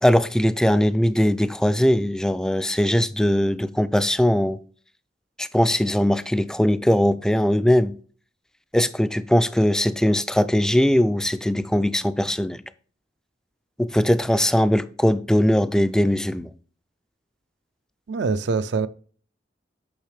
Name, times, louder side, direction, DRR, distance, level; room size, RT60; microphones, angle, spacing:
voice 1, 0.0-4.6 5.4-8.0 8.7-12.6 13.8-16.5, equal, 5° left, 0.3 m, -20 dB
voice 2, 18.1-18.9, right 4 dB, 70° right, 0.4 m, -24 dB
8.8 x 6.3 x 3.3 m
head